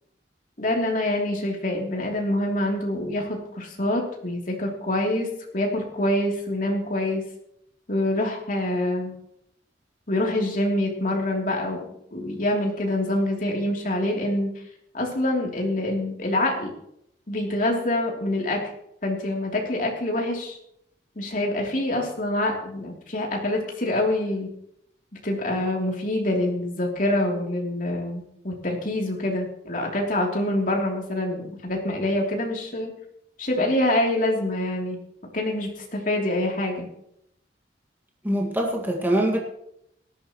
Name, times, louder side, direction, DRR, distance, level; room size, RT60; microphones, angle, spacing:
voice 1, 0.6-5.3 5.5-7.2 7.9-9.1 10.1-14.5 14.9-16.7 17.3-18.6 19.0-20.6 21.1-24.5 25.2-32.9 33.4-35.0 35.3-36.9, left 1 dB, 45° left, 0 dB, 3.1 m, -26 dB
voice 2, 38.2-39.4, right 1 dB, 10° right, 0 dB, 1.9 m, -23 dB
18.5 x 13.5 x 3.1 m, 0.74 s
head